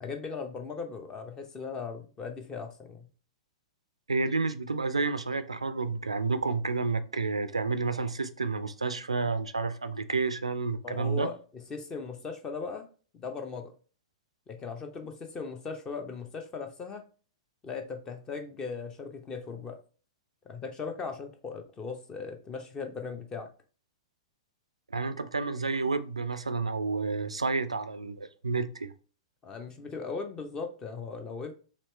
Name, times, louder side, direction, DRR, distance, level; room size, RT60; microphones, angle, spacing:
voice 1, 0.0-3.1 10.8-12.9 13.1-13.7 14.5-17.0 17.6-19.8 20.5-23.5 29.4-31.5, left 5 dB, 20° left, 0.7 m, -38 dB
voice 2, 4.1-11.3 24.9-28.9, right 4 dB, 80° right, 0.4 m, -30 dB
4.4 x 3.0 x 3.2 m
figure-of-eight pair, 105°, 3 cm